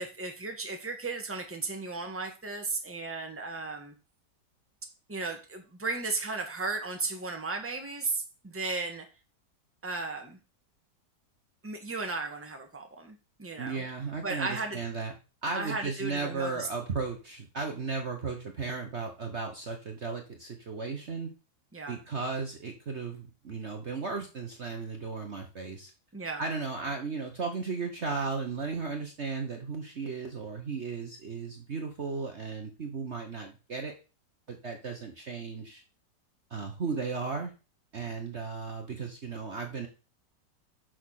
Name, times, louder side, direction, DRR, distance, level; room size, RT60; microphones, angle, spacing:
voice 1, 0.0-3.9 5.1-9.1 9.8-10.4 11.6-13.8 14.2-14.8 15.5-16.7 21.7-22.0 26.1-26.4, right 3 dB, 10° right, 1.4 m, -35 dB
voice 2, 13.6-15.1 15.4-21.3 21.9-25.9 26.4-33.9 34.5-35.8 36.5-37.5 37.9-39.9, right 4 dB, 45° right, 1.3 m, -35 dB
6.4 x 6.2 x 6.4 m
omnidirectional pair, 1.8 m